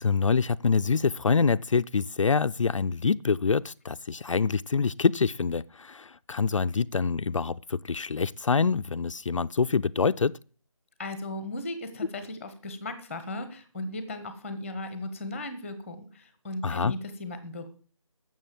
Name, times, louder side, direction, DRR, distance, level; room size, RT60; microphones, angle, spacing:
voice 1, 0.0-10.4 16.6-16.9, left 5 dB, 65° left, 0.5 m, -26 dB
voice 2, 11.0-17.7, left 2 dB, ahead, 1.0 m, -37 dB
13.0 x 7.5 x 7.6 m
figure-of-eight pair, 170°, 18 cm